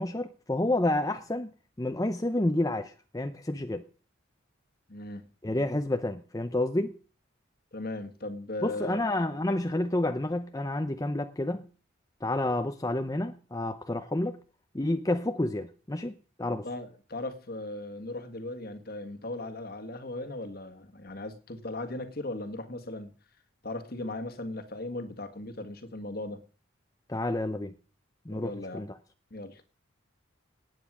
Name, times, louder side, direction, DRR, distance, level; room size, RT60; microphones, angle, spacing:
voice 1, 0.0-3.8 5.4-7.0 8.6-11.6 12.2-14.4 14.7-16.7 27.1-27.7 28.3-28.9, left 1 dB, 15° left, 0.6 m, -29 dB
voice 2, 4.9-5.3 7.7-9.0 16.6-23.1 23.6-26.4 28.3-28.9 29.3-29.6, left 2 dB, 50° left, 1.7 m, -38 dB
19.0 x 9.2 x 6.2 m
head